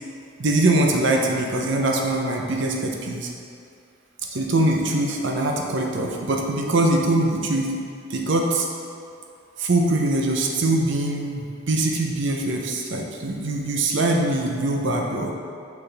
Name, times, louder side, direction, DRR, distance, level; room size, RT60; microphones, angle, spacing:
voice 1, 0.4-3.3 4.3-7.7 8.1-8.7 9.6-15.3, right 2 dB, 60° right, 1 dB, 0.7 m, -22 dB
6.2 x 5.6 x 3.4 m, 2.4 s
head